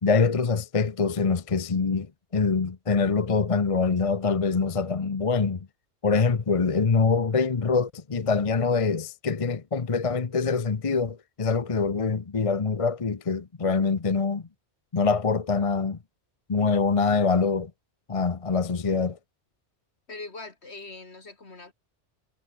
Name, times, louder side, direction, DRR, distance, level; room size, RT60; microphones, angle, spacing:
voice 1, 0.0-5.7 6.0-14.4 14.9-16.0 16.5-17.7 18.1-19.2, left 4 dB, 30° left, 0.9 m, -24 dB
voice 2, 20.1-21.7, left 3 dB, 65° left, 3.2 m, -41 dB
omnidirectional pair, 1.2 m